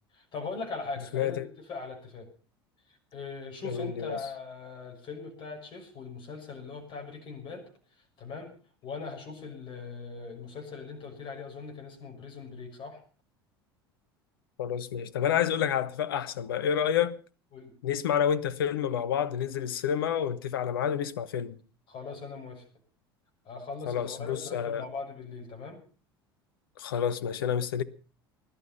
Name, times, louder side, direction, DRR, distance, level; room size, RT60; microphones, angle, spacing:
voice 1, 0.1-2.3 2.9-7.6 7.9-8.5 8.8-13.0 15.3-15.4 17.5-17.7 21.9-22.6 23.4-25.8, left 4 dB, 40° left, 6.3 m, -40 dB
voice 2, 1.1-1.5 3.6-4.2 14.6-17.2 17.8-21.6 23.8-24.8 26.8-27.8, left 9 dB, 65° left, 1.1 m, -29 dB
20.5 x 12.0 x 5.7 m
figure-of-eight pair, 70°, 13 cm